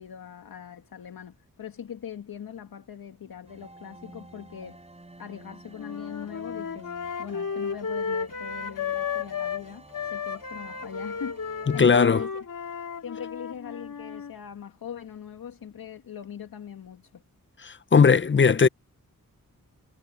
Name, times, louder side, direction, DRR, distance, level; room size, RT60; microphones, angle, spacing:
voice 1, 0.0-4.8 5.2-6.9 7.2-12.4 13.0-17.2, left 8 dB, 85° left, 2.2 m, -41 dB
sound 1, 3.5-12.0, right 2 dB, 20° right, 4.0 m, -51 dB
sound 2, 5.8-9.6 9.9-14.3, left 6 dB, 65° left, 3.6 m, -33 dB
voice 2, 11.7-12.2 17.6-18.7, left 5 dB, 35° left, 0.7 m, -18 dB
cardioid pair, 75°, 34 cm